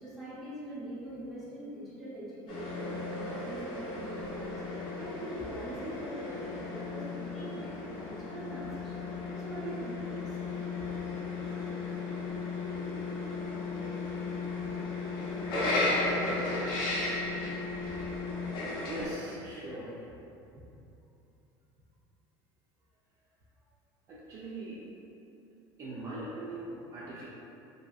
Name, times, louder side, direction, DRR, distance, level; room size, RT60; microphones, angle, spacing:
voice 1, 0.0-9.0 9.4-10.4 10.8-10.9, right 1 dB, ahead, -10 dB, 0.8 m, -43 dB
sound 1, 2.5-19.1, left 3 dB, 50° left, 0.6 m, -35 dB
voice 2, 18.8-20.0 24.1-24.8 25.8-27.3, right 1 dB, 35° right, -8 dB, 0.4 m, -40 dB
2.7 x 2.6 x 2.3 m, 2.8 s
cardioid pair, 145°, 10 cm